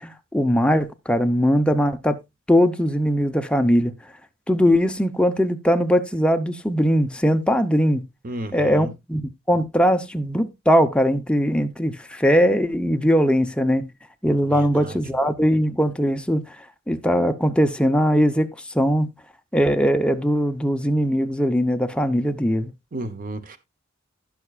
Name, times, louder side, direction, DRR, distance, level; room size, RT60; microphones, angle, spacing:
voice 1, 0.0-2.2 2.5-3.9 4.5-8.1 8.5-13.9 14.2-16.6 16.9-19.1 19.5-22.7, equal, 5° left, 0.7 m, -20 dB
voice 2, 8.2-8.9 14.5-15.0 22.9-23.6, right 2 dB, 45° right, 0.9 m, -33 dB
15.5 x 5.9 x 2.4 m
head